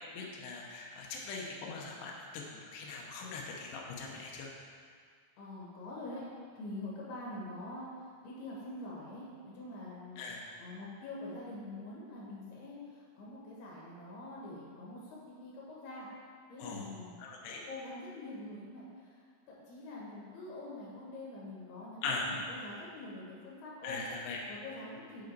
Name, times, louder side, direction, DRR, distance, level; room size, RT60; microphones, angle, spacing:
voice 1, 0.0-4.5 10.2-10.4 16.6-16.9 17.2-17.6 22.0-22.3 23.8-24.4, left 4 dB, 90° left, -2 dB, 2.3 m, -41 dB
voice 2, 5.4-6.3 6.6-7.9 8.2-10.2 10.6-16.1 16.5-17.2 17.5-19.2 19.5-24.0 24.5-25.3, left 2 dB, 60° left, -5 dB, 3.2 m, -45 dB
7.7 x 5.0 x 4.6 m, 2.1 s
omnidirectional pair, 5.9 m